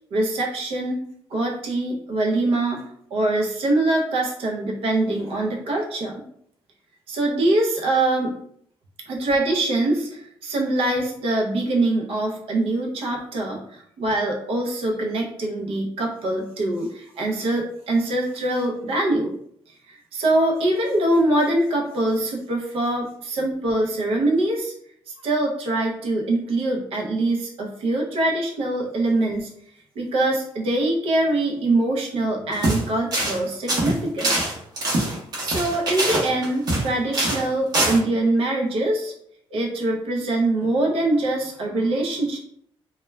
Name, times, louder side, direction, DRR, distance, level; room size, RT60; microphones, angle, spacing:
voice 1, 0.1-1.0 1.3-2.8 3.1-6.2 7.1-8.3 9.1-19.3 19.7-24.7 25.1-29.5 30.0-34.4 35.4-39.1 39.5-42.4, right 2 dB, 75° right, 0 dB, 0.6 m, -23 dB
sound 1, 32.5-32.8 33.1-33.4 33.7-36.9 37.1-37.4 37.7-38.0, right 1 dB, 40° right, 0.8 m, -23 dB
2.2 x 2.2 x 3.1 m, 0.68 s
cardioid pair, 175°, 10 cm